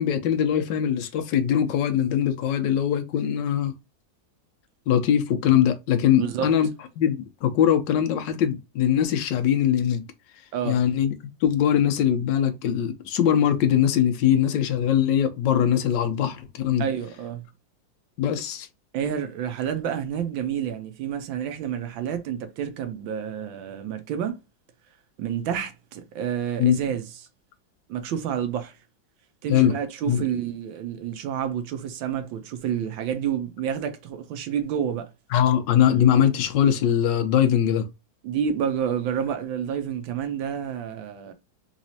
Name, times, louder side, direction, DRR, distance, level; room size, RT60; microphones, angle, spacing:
voice 1, 0.0-3.7 4.9-6.7 7.0-10.0 10.6-11.1 11.4-16.8 18.2-18.7 26.6-26.8 29.5-29.7 30.1-30.2 35.3-37.9, left 9 dB, 70° left, 1.3 m, -21 dB
voice 2, 6.1-6.5 10.5-10.8 16.8-17.5 18.9-24.4 25.2-27.1 27.9-28.8 29.4-35.1 38.2-41.3, right 8 dB, 85° right, 1.4 m, -29 dB
4.0 x 3.1 x 2.7 m
omnidirectional pair, 2.1 m